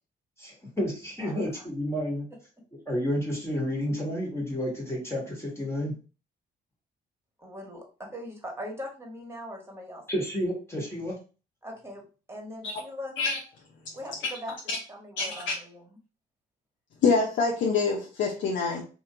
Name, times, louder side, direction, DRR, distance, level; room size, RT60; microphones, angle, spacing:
voice 1, 0.4-2.3 2.9-5.9 10.1-11.1, equal, 15° left, 1.6 m, -30 dB
voice 2, 1.2-1.7 7.4-10.0 11.6-12.0 12.3-13.1 13.9-15.8, left 1 dB, 15° right, 1.6 m, -41 dB
voice 3, 15.2-15.5 17.0-18.8, left 4 dB, 70° left, 0.8 m, -25 dB
3.1 x 2.6 x 3.8 m
cardioid pair, 90°, 20 cm